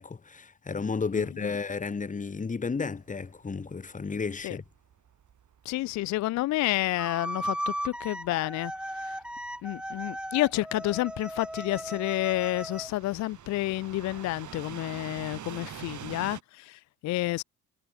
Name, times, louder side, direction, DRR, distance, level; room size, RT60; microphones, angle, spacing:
voice 1, 0.0-4.6, left 5 dB, 15° left, 1.2 m, -32 dB
sound 1, 2.7-16.4, right 9 dB, 40° right, 2.6 m, -47 dB
voice 2, 5.6-9.2 9.6-17.4, left 17 dB, 40° left, 0.5 m, -30 dB
sound 2, 7.0-12.9, equal, ahead, 2.2 m, -36 dB
figure-of-eight pair, 50°, 44 cm